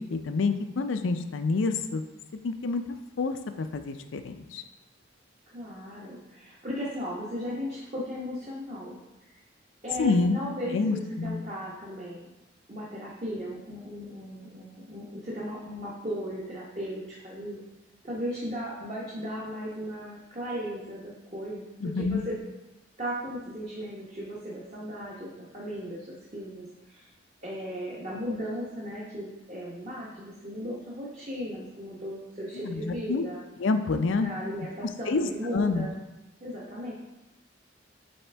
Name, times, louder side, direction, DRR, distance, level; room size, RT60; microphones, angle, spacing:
voice 1, 0.1-2.0 2.4-2.8 3.2-4.6 10.0-10.4 10.7-11.4 21.8-22.2 32.6-33.2 33.6-34.3 35.1-35.9, left 3 dB, 85° left, 8 dB, 0.5 m, -27 dB
voice 2, 5.5-9.0 9.8-12.3 12.7-17.6 18.0-21.6 21.9-22.4 23.0-27.1 27.4-33.4 34.2-36.0 36.4-36.9, equal, 35° right, -6 dB, 1.0 m, -36 dB
8.4 x 3.6 x 3.4 m, 1.0 s
head